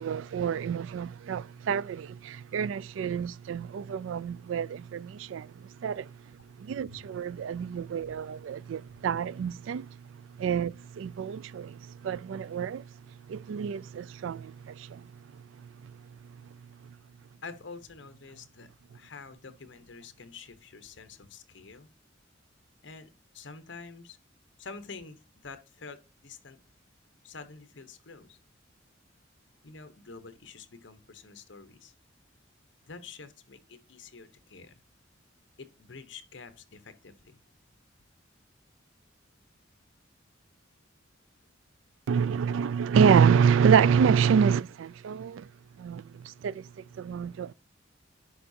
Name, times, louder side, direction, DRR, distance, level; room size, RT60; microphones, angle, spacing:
voice 1, 0.0-5.5 5.8-6.1 6.6-9.9 10.4-12.8 13.3-15.0 42.1-45.4 45.8-46.0 46.4-46.6 47.0-47.5, right 7 dB, 75° right, 0.3 m, -27 dB
voice 2, 17.4-21.9 22.8-24.2 24.6-26.6 27.2-28.4 29.6-31.9 32.9-34.8 35.6-37.4, left 4 dB, 65° left, 1.0 m, -47 dB
11.0 x 4.8 x 2.7 m
head